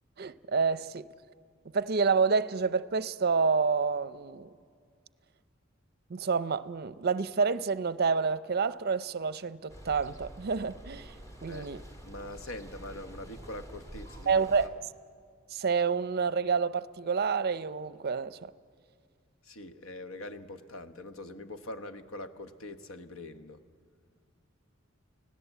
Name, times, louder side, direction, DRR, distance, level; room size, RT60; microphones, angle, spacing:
voice 1, 0.2-1.1 1.7-4.6 6.1-11.1 11.4-11.8 14.3-14.8 15.5-18.5, right 5 dB, 50° right, 0.6 m, -28 dB
sound 1, 9.7-14.7, right 1 dB, 15° left, 1.7 m, -47 dB
voice 2, 11.4-14.7 19.4-23.6, left 1 dB, 90° left, 1.1 m, -43 dB
29.5 x 17.0 x 8.1 m
head